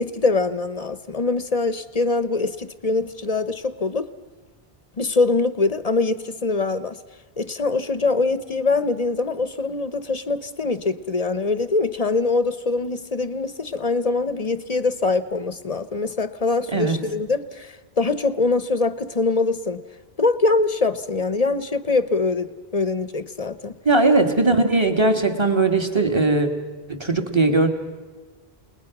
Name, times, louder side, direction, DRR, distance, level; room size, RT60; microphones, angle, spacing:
voice 1, 0.0-4.1 5.0-7.0 7.4-19.8 20.2-23.7, left 3 dB, 40° left, 14 dB, 0.8 m, -23 dB
voice 2, 23.9-26.5 26.9-27.7, right 3 dB, 25° right, 6 dB, 1.8 m, -19 dB
29.5 x 19.5 x 6.0 m, 1.3 s
omnidirectional pair, 1.1 m